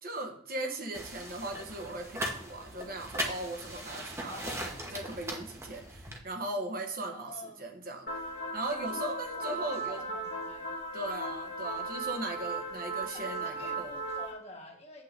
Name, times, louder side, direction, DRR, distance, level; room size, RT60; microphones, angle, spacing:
voice 1, 0.0-7.3 7.6-8.1 8.5-10.0 10.9-13.9, right 2 dB, 45° right, 3 dB, 1.1 m, -38 dB
sound 1, 0.9-6.2, equal, 15° right, 1.1 m, -39 dB
voice 2, 4.3-4.8 7.1-7.7 9.3-10.7 12.8-15.0, left 2 dB, 30° left, 1 dB, 1.5 m, -48 dB
sound 2, 8.1-14.3, right 2 dB, 60° left, 1.9 m, -37 dB
8.4 x 3.9 x 6.6 m, 0.64 s
head